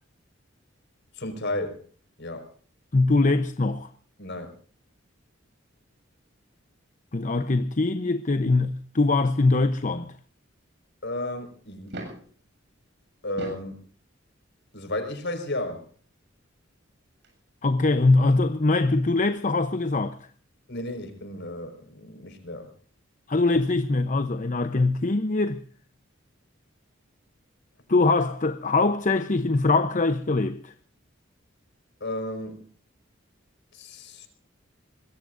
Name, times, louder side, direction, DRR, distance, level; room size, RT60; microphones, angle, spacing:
voice 1, 1.2-1.8 2.2-2.5 4.2-4.5 11.0-12.0 13.2-13.8 14.7-15.9 20.7-22.7 32.0-32.6 33.7-34.3, left 1 dB, 60° left, 5.1 m, -33 dB
voice 2, 2.9-3.9 7.1-10.1 17.6-20.2 23.3-25.6 27.9-30.7, left 3 dB, 40° left, 0.8 m, -22 dB
sound 1, 11.9-12.3 13.2-13.7 15.1-15.2 16.9-17.0 17.2-17.3, right 1 dB, 60° right, 7.1 m, -38 dB
25.0 x 22.0 x 2.6 m
head